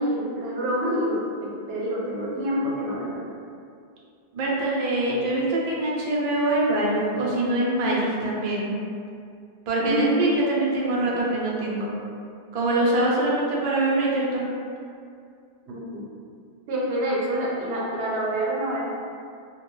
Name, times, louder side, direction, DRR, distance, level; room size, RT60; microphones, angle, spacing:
voice 1, 0.0-3.2 9.8-10.3 15.7-16.0 16.7-18.8, right 1 dB, 85° right, -4 dB, 0.9 m, -27 dB
voice 2, 4.3-8.7 9.7-11.9 12.5-14.5, right 1 dB, 50° right, -5 dB, 0.4 m, -24 dB
2.2 x 2.1 x 3.0 m, 2.4 s
omnidirectional pair, 1.1 m